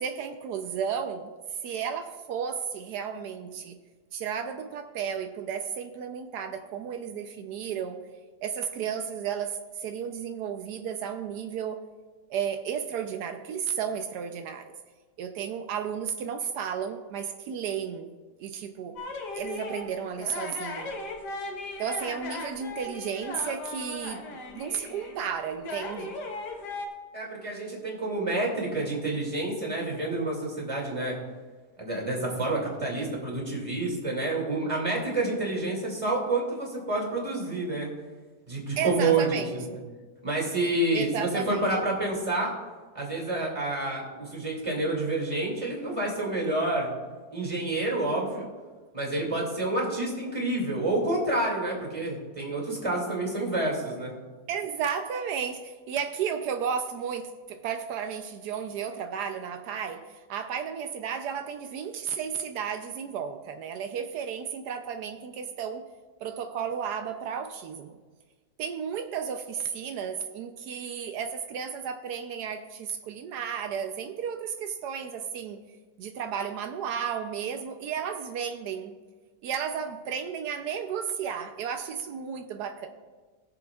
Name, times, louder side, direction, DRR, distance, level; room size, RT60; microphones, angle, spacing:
voice 1, 0.0-1.3 1.6-3.8 4.1-8.0 8.4-11.8 12.3-14.7 15.2-18.1 18.4-19.0 19.3-20.9 21.8-26.1 38.8-39.8 40.9-41.7 54.5-65.8 66.2-68.0 68.6-75.6 76.0-78.9 79.4-82.9, right 7 dB, 85° right, 6 dB, 1.2 m, -33 dB
sound 1, 19.0-26.9, left 3 dB, 90° left, 1.7 m, -38 dB
voice 2, 27.1-31.2 31.8-37.9 38.5-39.8 40.2-42.5 42.9-46.9 47.3-48.5 48.9-54.1, right 2 dB, 20° right, -2 dB, 2.4 m, -28 dB
20.5 x 7.0 x 2.3 m, 1.4 s
omnidirectional pair, 1.7 m